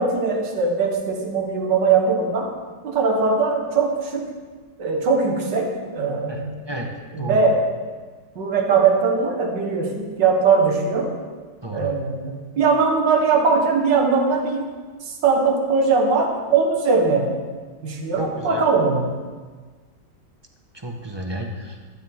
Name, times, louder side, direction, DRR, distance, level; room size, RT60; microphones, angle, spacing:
voice 1, 0.0-2.5 2.8-4.3 4.8-6.6 7.1-7.7 8.4-11.1 11.7-14.7 15.0-17.3 17.8-19.1, right 4 dB, 70° right, 2 dB, 2.2 m, -20 dB
voice 2, 7.2-7.5 11.6-11.9 18.2-18.6 20.7-21.8, right 1 dB, 15° right, 1 dB, 1.1 m, -31 dB
15.5 x 12.5 x 3.7 m, 1.4 s
omnidirectional pair, 2.0 m